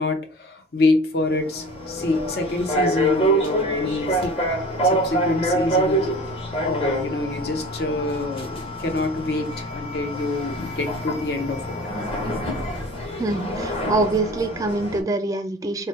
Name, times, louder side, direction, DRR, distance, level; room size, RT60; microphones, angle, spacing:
voice 1, 0.0-4.3 4.8-6.1 6.6-11.8, left 2 dB, 60° left, 5 dB, 0.7 m, -26 dB
sound 1, 1.2-15.0, right 1 dB, 35° left, 0.9 m, -26 dB
voice 2, 13.2-15.9, right 2 dB, 20° right, 7 dB, 0.3 m, -24 dB
3.1 x 2.2 x 4.2 m, 0.38 s
head